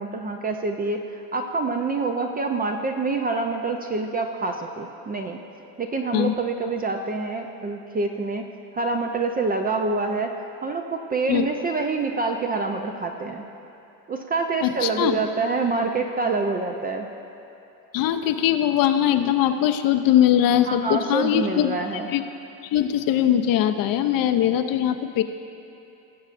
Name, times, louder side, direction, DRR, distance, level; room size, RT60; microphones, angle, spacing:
voice 1, 0.0-5.4 5.8-8.5 8.7-13.5 14.1-17.1 20.6-22.1, right 3 dB, 20° right, 4 dB, 0.4 m, -26 dB
voice 2, 14.6-15.2 17.9-21.7 22.1-22.2 22.7-25.2, left 11 dB, 45° left, 8 dB, 0.5 m, -21 dB
18.0 x 7.2 x 2.5 m, 2.9 s
hypercardioid pair, 85°, 50 cm